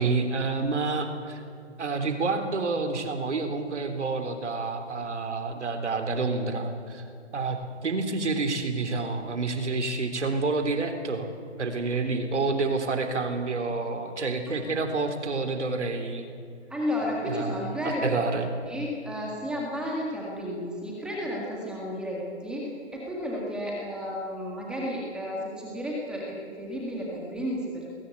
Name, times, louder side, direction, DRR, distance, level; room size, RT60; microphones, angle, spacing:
voice 1, 0.0-1.4 1.8-7.0 7.3-11.3 11.6-16.3 17.2-18.5, right 3 dB, 75° right, 6 dB, 3.6 m, -28 dB
voice 2, 16.7-18.2 18.7-27.9, equal, ahead, -3 dB, 1.9 m, -32 dB
20.0 x 18.5 x 8.4 m, 2.6 s
hypercardioid pair, 165°, 35 cm